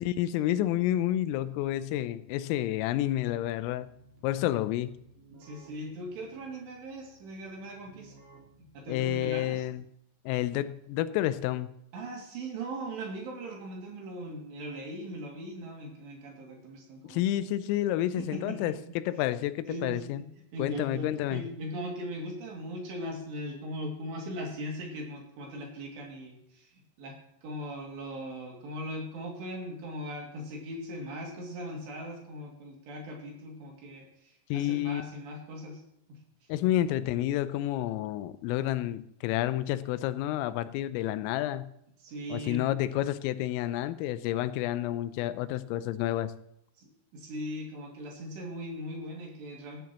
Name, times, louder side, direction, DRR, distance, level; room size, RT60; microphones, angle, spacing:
voice 1, 0.0-3.9 4.2-4.9 8.9-9.8 10.3-11.7 17.1-20.2 20.6-21.4 34.5-35.0 36.5-41.7 42.3-46.3, left 13 dB, 90° left, 14 dB, 3.3 m, -30 dB
Keyboard (musical), 3.0-9.9, right 2 dB, 40° right, 4.5 m, -58 dB
voice 2, 5.3-8.1 8.7-9.6 11.9-17.2 18.2-18.8 19.7-26.7 27.0-35.8 36.1-36.2 42.0-42.7 46.8-49.8, equal, 60° right, -1 dB, 4.4 m, -39 dB
17.0 x 11.5 x 3.0 m, 0.75 s
omnidirectional pair, 5.8 m